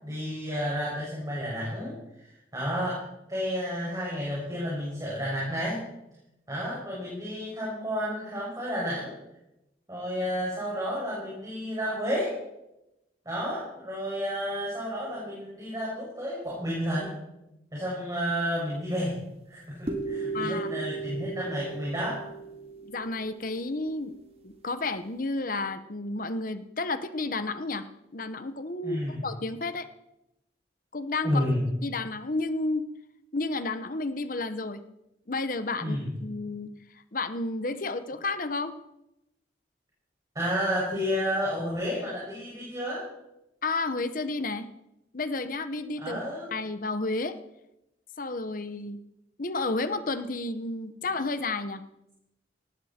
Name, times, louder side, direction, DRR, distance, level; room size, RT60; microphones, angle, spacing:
voice 1, 0.0-3.0 3.3-5.8 6.5-9.1 9.9-12.3 13.2-17.1 17.7-19.2 19.5-22.2 28.8-29.2 31.2-31.6 35.8-36.0 40.3-43.0 46.0-46.5, equal, 20° right, -6 dB, 6.3 m, -31 dB
sound 1, 19.9-23.9, right 4 dB, 35° right, 2.0 m, -36 dB
voice 2, 20.3-20.7 22.8-24.1 24.4-27.8 28.1-29.9 30.9-31.5 31.8-32.9 33.3-34.8 35.3-36.7 37.1-38.7 43.6-44.7 45.1-46.2 46.5-47.4 48.2-49.0 49.4-51.8, left 3 dB, 50° left, 11 dB, 1.0 m, -31 dB
19.0 x 14.5 x 4.4 m, 0.88 s
head